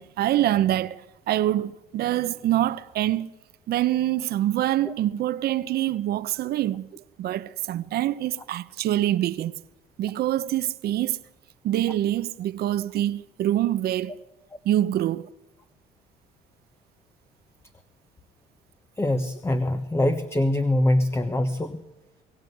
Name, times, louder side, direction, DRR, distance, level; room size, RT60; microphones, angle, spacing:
voice 1, 0.0-3.3 3.7-9.5 10.0-11.2 11.6-14.2 14.6-15.3, right 13 dB, 70° right, 1.1 m, -25 dB
voice 2, 19.0-21.8, left 1 dB, 15° left, 1.3 m, -23 dB
23.5 x 17.0 x 9.4 m
cardioid pair, 110°, 17 cm